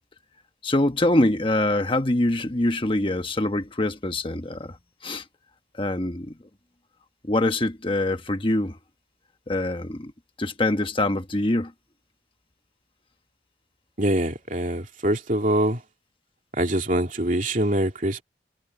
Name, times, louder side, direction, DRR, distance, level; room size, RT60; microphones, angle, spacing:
voice 1, 0.6-4.7 5.0-5.2 5.8-6.3 7.3-8.8 9.5-10.1 10.4-11.7, left 1 dB, 30° left, 1.3 m, -24 dB
voice 2, 14.0-15.8 16.6-18.2, right 1 dB, 45° right, 2.6 m, -24 dB
head